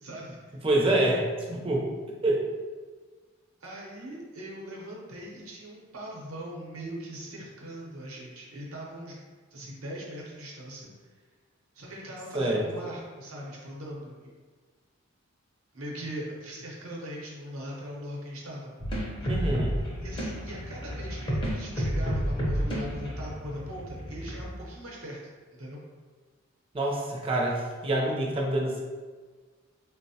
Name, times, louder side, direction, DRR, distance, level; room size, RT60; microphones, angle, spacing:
voice 1, 0.0-0.6 3.6-9.2 9.5-10.9 11.7-14.3 15.7-18.7 19.2-19.3 20.0-25.2 25.5-25.8, equal, 80° right, -3 dB, 0.7 m, -40 dB
voice 2, 0.6-1.9 2.2-2.4 12.3-12.6 19.3-19.7 26.7-28.8, right 1 dB, 25° right, -2 dB, 0.4 m, -26 dB
sound 1, 18.8-24.5, equal, 25° left, 0.5 m, -31 dB
4.0 x 2.0 x 2.7 m, 1.5 s
head